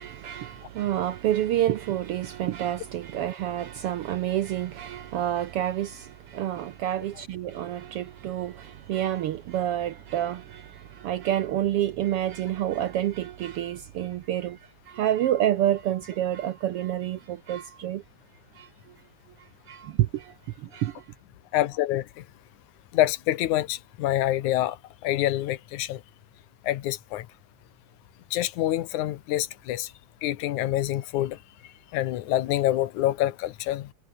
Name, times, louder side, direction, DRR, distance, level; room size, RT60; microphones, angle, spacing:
voice 1, 0.0-14.6 14.9-18.0 18.6-18.7 19.7-20.3 20.7-21.0, right 12 dB, 70° right, 1.4 m, -28 dB
voice 2, 21.5-22.2 22.9-24.8 25.0-26.0 26.6-27.3 28.3-29.9 30.2-31.4 31.9-33.9, left 14 dB, 85° left, 2.5 m, -26 dB
omnidirectional pair, 3.3 m